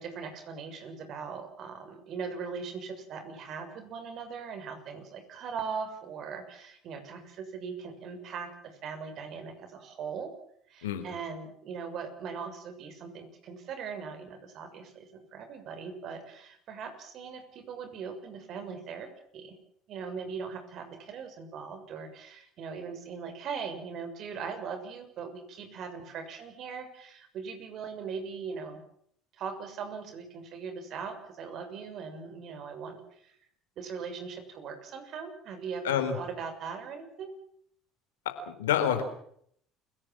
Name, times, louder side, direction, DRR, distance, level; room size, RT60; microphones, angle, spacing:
voice 1, 0.0-8.5 8.8-10.3 10.7-19.1 19.3-19.6 19.9-28.8 29.3-33.4 33.8-37.3, right 5 dB, 55° right, 8 dB, 6.6 m, -40 dB
voice 2, 35.8-36.2 38.3-39.0, left 9 dB, 90° left, 8 dB, 3.9 m, -28 dB
29.0 x 17.0 x 7.6 m, 0.67 s
hypercardioid pair, 75°, 0 cm